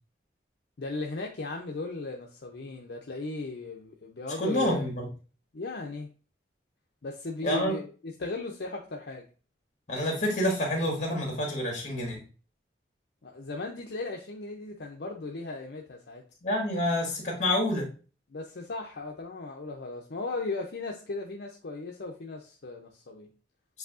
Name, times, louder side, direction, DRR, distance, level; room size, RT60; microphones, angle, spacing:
voice 1, 0.8-4.9 5.5-6.1 7.0-9.2 13.2-16.2 18.3-23.3, left 3 dB, 60° left, 0.6 m, -37 dB
voice 2, 4.4-5.1 7.4-7.8 9.9-12.2 16.4-17.9, left 1 dB, 40° left, 1.7 m, -28 dB
7.8 x 2.7 x 2.5 m
head